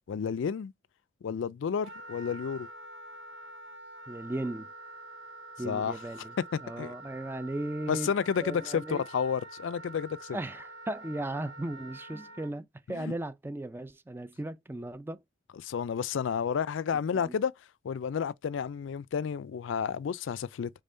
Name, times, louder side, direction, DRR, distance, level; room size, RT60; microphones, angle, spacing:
voice 1, 0.1-0.7 1.2-2.7 5.6-6.0 6.8-6.9 7.9-10.4 12.9-13.1 15.6-17.5 17.8-20.7, left 7 dB, 70° left, 0.3 m, -31 dB
Wind instrument woodwind instrument, 1.8-12.5, right 2 dB, 65° right, 1.6 m, -47 dB
voice 2, 4.1-4.7 5.6-6.3 6.6-8.1 8.4-9.0 10.3-15.2 17.1-17.4, right 1 dB, 10° right, 0.3 m, -36 dB
5.4 x 3.6 x 2.6 m
head